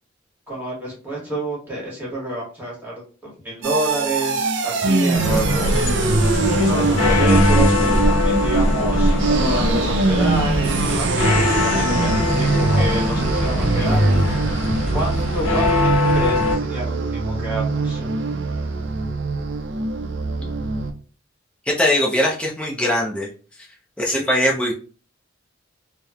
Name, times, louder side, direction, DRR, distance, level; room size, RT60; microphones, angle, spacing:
voice 1, 0.5-5.9 6.6-14.1 14.9-17.0 17.2-18.1, right 1 dB, 10° right, -5 dB, 1.3 m, -28 dB
sound 1, 3.6-20.9, right 3 dB, 60° right, 0.4 m, -22 dB
sound 2, 5.1-16.6, left 2 dB, 80° left, 0.6 m, -21 dB
sound 3, 8.9-15.6, equal, 40° right, 0.8 m, -35 dB
voice 2, 21.7-23.3 24.0-24.7, left 1 dB, 5° left, -3 dB, 0.5 m, -21 dB
2.9 x 2.0 x 2.3 m, 0.38 s
head